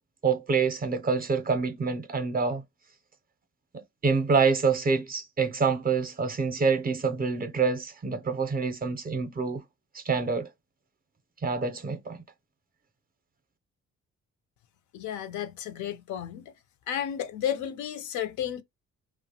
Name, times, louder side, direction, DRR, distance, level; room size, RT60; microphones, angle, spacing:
voice 1, 0.2-2.6 3.7-9.6 9.9-10.5 11.4-12.2, right 5 dB, 30° right, 0.5 m, -26 dB
voice 2, 14.9-16.5 16.9-18.6, left 10 dB, 70° left, 0.5 m, -32 dB
2.6 x 2.0 x 2.7 m
cardioid pair, 90°, 30 cm